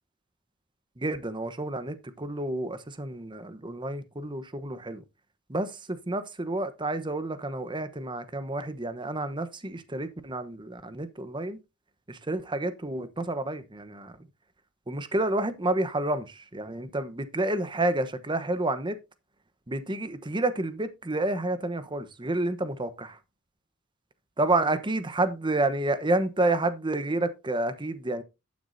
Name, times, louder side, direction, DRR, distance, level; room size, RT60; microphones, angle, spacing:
voice 1, 1.0-5.0 5.5-11.6 12.1-14.2 14.9-19.0 19.7-23.2 24.4-28.2, right 2 dB, 25° right, 1.0 m, -29 dB
11.5 x 9.5 x 2.7 m
head